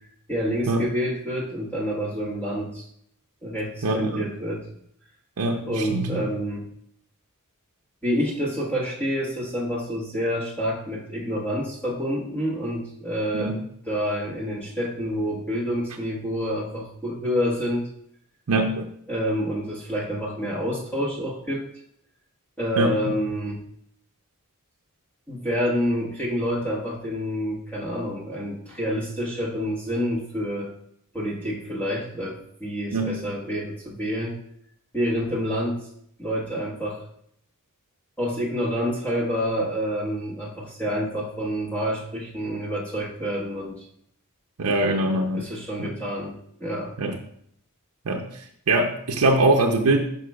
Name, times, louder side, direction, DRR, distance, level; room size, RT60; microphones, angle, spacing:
voice 1, 0.3-2.9 3.4-4.7 5.6-6.7 8.0-13.6 13.9-17.9 19.1-21.6 22.6-23.6 25.3-30.7 31.1-34.4 34.9-35.9 36.2-37.0 38.2-43.8 44.6-46.9, equal, 10° left, -6 dB, 1.3 m, -28 dB
voice 2, 3.8-4.3 5.4-6.2 13.3-13.6 18.5-18.8 22.8-23.0 32.9-33.2 44.6-45.4 45.8-45.9 47.0-47.2 48.1-48.3 48.7-50.0, right 2 dB, 85° right, 1 dB, 0.6 m, -22 dB
11.0 x 5.4 x 2.3 m, 0.69 s
head